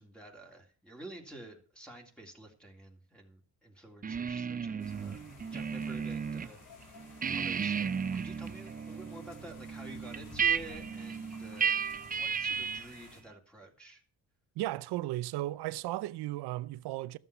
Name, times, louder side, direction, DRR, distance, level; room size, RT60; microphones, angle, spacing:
voice 1, 0.0-5.2 5.5-6.6 6.9-14.0, right 1 dB, 5° left, 3.2 m, -50 dB
sound 1, 4.0-6.5 6.8-13.0, right 6 dB, 25° right, 0.5 m, -34 dB
sound 2, 4.8-13.2, left 4 dB, 70° left, 5.5 m, -54 dB
voice 2, 14.6-17.2, right 16 dB, 90° right, 0.7 m, -35 dB
13.0 x 7.7 x 6.9 m
cardioid pair, 90°, 38 cm